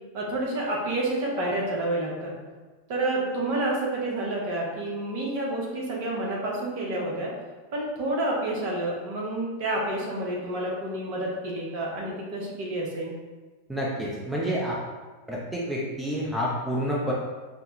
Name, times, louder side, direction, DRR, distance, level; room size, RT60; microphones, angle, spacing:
voice 1, 0.1-2.4 2.9-7.3 7.7-13.2, right 1 dB, 45° right, -3 dB, 1.0 m, -29 dB
voice 2, 13.7-14.8 15.3-17.1, equal, 5° right, -5 dB, 0.7 m, -28 dB
5.6 x 2.3 x 3.1 m, 1.3 s
figure-of-eight pair, 90°, 0 cm